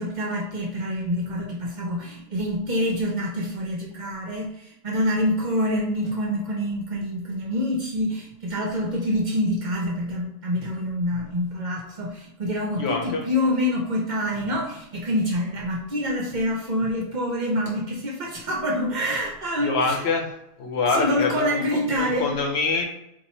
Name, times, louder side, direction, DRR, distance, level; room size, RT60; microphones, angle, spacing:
voice 1, 0.0-20.0 20.9-22.3, equal, 50° right, -2 dB, 0.8 m, -26 dB
voice 2, 12.8-13.2 19.6-20.3 20.6-21.6 21.9-22.8, left 4 dB, 80° left, 2 dB, 1.0 m, -25 dB
2.9 x 2.5 x 4.2 m, 0.82 s
omnidirectional pair, 1.1 m